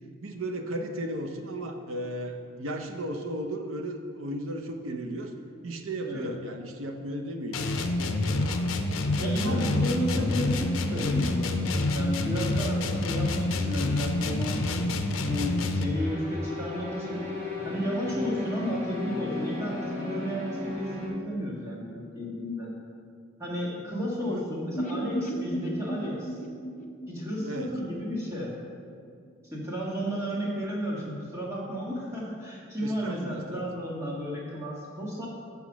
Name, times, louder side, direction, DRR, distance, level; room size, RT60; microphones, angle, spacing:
voice 1, 0.2-5.3 5.6-8.7 9.2-10.6 24.2-24.5 27.4-27.7 32.8-33.6, right 1 dB, 85° right, 4 dB, 0.7 m, -35 dB
sound 1, 7.5-16.0, left 2 dB, 80° left, 0.6 m, -27 dB
voice 2, 9.2-11.6 11.9-14.9 15.2-17.3 17.6-22.7 23.4-26.4 27.1-28.5 29.5-35.3, equal, 15° right, -6 dB, 1.8 m, -33 dB
sound 2, 15.9-21.1, left 3 dB, 35° right, 2.2 m, -35 dB
sound 3, 24.8-28.6 28.9-29.0 29.3-29.4, right 1 dB, 40° left, 0.6 m, -35 dB
7.1 x 5.9 x 6.1 m, 2.2 s
head